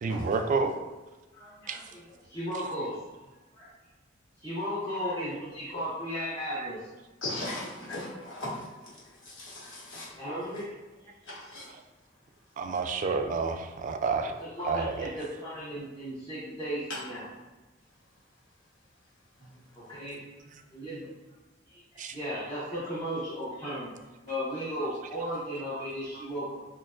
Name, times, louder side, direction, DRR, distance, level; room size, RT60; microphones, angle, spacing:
voice 1, 0.0-0.8 1.7-1.8 6.6-6.7 11.7-11.8 12.6-14.4 14.7-15.1 22.0-22.2 24.8-24.9 25.2-25.3 25.7-25.9 26.1-26.2, right 4 dB, 40° right, 6 dB, 0.3 m, -30 dB
voice 2, 1.3-2.0 2.3-3.0 3.5-3.7 4.4-6.9 10.1-10.7 11.0-11.1 12.7-13.1 14.4-17.2 19.8-20.2 20.7-21.1 21.7-23.9 24.2-26.6, equal, 25° left, -10 dB, 0.9 m, -35 dB
voice 3, 7.2-10.1 11.2-11.7 16.9-17.0 19.4-19.6, left 1 dB, 70° left, -7 dB, 1.3 m, -38 dB
5.9 x 2.2 x 2.4 m, 1.2 s
head